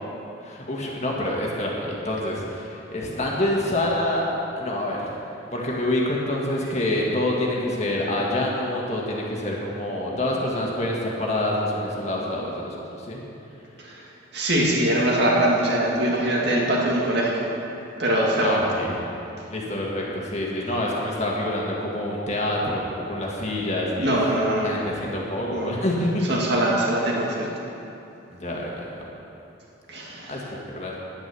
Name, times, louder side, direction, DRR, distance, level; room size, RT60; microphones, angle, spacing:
voice 1, 0.4-4.2 4.6-5.1 5.5-12.7 13.1-13.2 18.4-19.0 19.5-24.1 24.6-26.3 28.3-29.1 30.3-30.4 30.7-30.9, left 1 dB, 35° left, -3 dB, 1.8 m, -26 dB
voice 2, 13.8-17.5 18.0-18.7 24.0-24.8 25.5-25.7 26.2-27.5 29.9-30.5, right 1 dB, 55° right, -3 dB, 2.2 m, -23 dB
10.5 x 10.0 x 7.0 m, 2.8 s
head